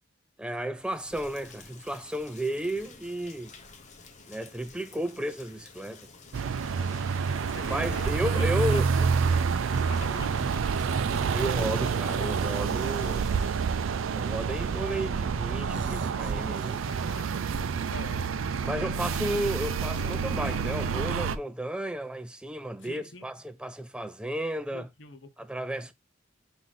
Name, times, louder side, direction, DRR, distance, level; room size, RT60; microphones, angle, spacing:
voice 1, 0.4-3.5 4.3-6.1 7.7-8.9 11.3-13.3 14.1-16.8 18.6-24.9 25.4-25.9, right 1 dB, 5° right, 0.3 m, -33 dB
Rain, 0.7-13.9, left 4 dB, 35° left, 0.8 m, -51 dB
sound 1, 6.3-21.4, right 5 dB, 80° right, 0.4 m, -28 dB
voice 2, 7.4-9.1 9.7-10.5 16.8-17.5 17.8-18.3 22.8-23.3 24.7-25.3, left 3 dB, 70° left, 0.9 m, -43 dB
sound 2, 14.5-15.2 15.4-17.4 18.4-19.9, right 4 dB, 65° right, 0.8 m, -49 dB
5.8 x 2.7 x 3.2 m
head